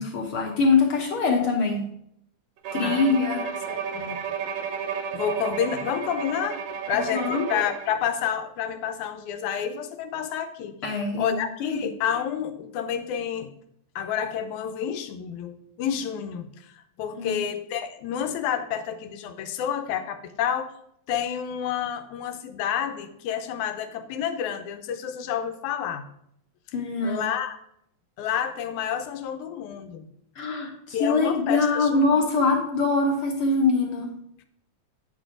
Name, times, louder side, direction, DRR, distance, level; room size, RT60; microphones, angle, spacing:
voice 1, 0.0-1.9 2.7-3.4 7.1-7.6 10.8-11.8 17.2-17.4 26.7-27.3 30.4-34.1, left 3 dB, 60° left, 1 dB, 1.6 m, -23 dB
Bowed string instrument, 2.6-8.0, right 7 dB, 75° right, 1.6 m, -32 dB
voice 2, 2.8-3.2 3.4-4.2 5.1-6.6 6.9-13.5 14.0-20.7 21.1-26.1 27.0-27.6 28.2-30.1 30.9-32.3, left 8 dB, 80° left, 8 dB, 2.0 m, -29 dB
8.4 x 6.9 x 3.7 m, 0.72 s
omnidirectional pair, 3.5 m